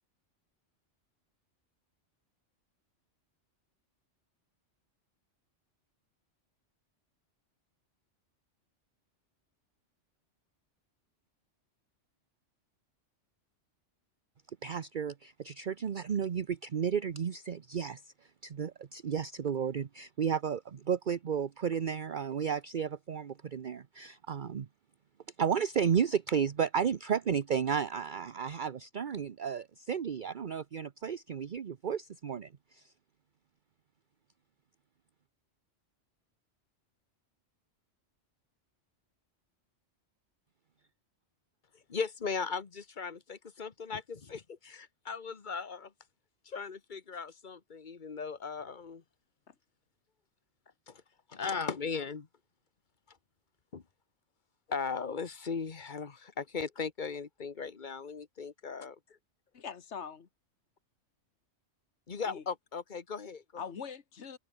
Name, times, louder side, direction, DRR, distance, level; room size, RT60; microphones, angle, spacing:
voice 1, 14.6-18.1 18.4-24.7 25.4-32.8, right 7 dB, 45° right, 0.9 m, -33 dB
voice 2, 41.9-45.9 46.4-49.0 50.9-51.0 51.3-52.3 53.7-53.8 54.7-59.0 62.1-63.4, left 5 dB, 40° left, 1.4 m, -38 dB
voice 3, 59.5-60.3 62.3-62.4 63.6-64.4, left 6 dB, 70° left, 1.8 m, -42 dB
omnidirectional pair, 1.2 m